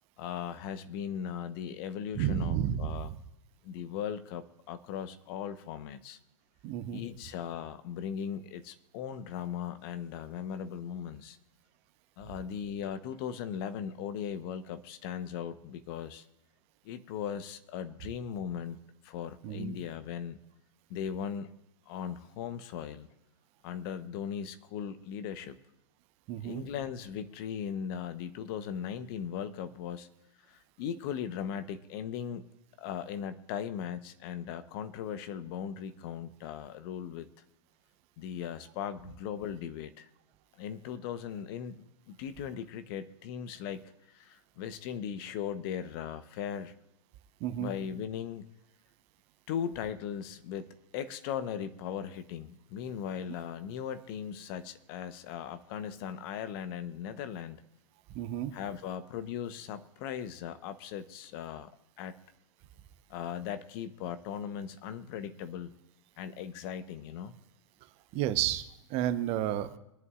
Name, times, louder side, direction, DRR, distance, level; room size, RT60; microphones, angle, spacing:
voice 1, 0.2-3.1 3.6-6.2 6.9-11.4 12.2-16.2 16.8-18.8 19.0-20.4 20.9-21.5 21.9-23.1 23.6-25.6 26.4-30.1 30.5-32.4 32.8-37.3 38.2-40.1 40.6-43.8 44.1-46.7 47.6-48.4 49.5-57.6 58.5-61.7 62.0-62.1 63.1-65.7 66.2-67.4, left 8 dB, 45° left, 11 dB, 1.0 m, -38 dB
voice 2, 2.1-3.2 6.6-7.0 19.4-19.8 26.3-26.6 47.4-47.7 58.1-58.5 68.1-69.8, right 11 dB, 40° right, 11 dB, 1.0 m, -31 dB
23.5 x 11.0 x 2.5 m, 0.84 s
figure-of-eight pair, 105°, 17 cm